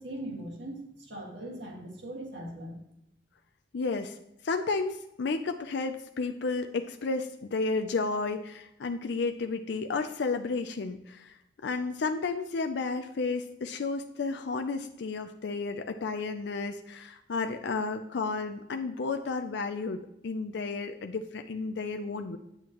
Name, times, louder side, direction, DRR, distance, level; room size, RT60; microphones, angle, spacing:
voice 1, 0.0-2.8, right 1 dB, 65° right, 0 dB, 1.9 m, -40 dB
voice 2, 3.7-4.2 4.4-11.4 11.6-22.4, left 4 dB, 65° left, 7 dB, 0.4 m, -32 dB
8.3 x 7.8 x 2.9 m, 0.84 s
head